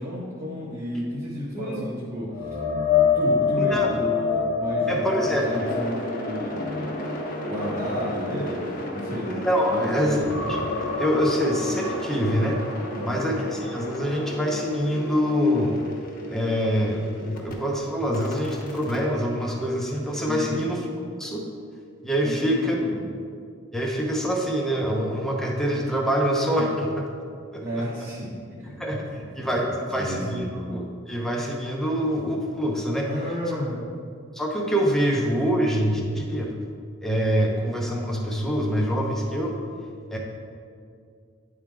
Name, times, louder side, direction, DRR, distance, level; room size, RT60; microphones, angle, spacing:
voice 1, 0.0-2.6 2.9-6.9 7.5-9.3 9.7-10.3 12.9-13.3 20.2-20.6 22.2-23.0 27.6-28.3 28.6-29.3 30.0-30.5 33.0-33.8, equal, 40° right, -9 dB, 1.3 m, -32 dB
voice 2, 1.5-1.9 3.6-4.0 4.9-5.7 9.3-10.2 10.5-12.6 13.0-15.8 16.3-20.9 21.2-21.4 22.0-22.7 23.7-27.1 27.5-27.8 28.8-29.0 29.3-33.1 33.5-33.6 34.3-36.5 37.0-39.5 40.1-40.2, equal, ahead, -1 dB, 0.8 m, -25 dB
sound 1, 2.3-9.7 10.1-13.9 14.3-14.5 17.9-18.0, left 5 dB, 80° left, 0.9 m, -27 dB
sound 2, 5.2-17.5 18.1-20.3, equal, 45° left, 1.0 m, -35 dB
9.6 x 3.8 x 4.6 m, 2.2 s
head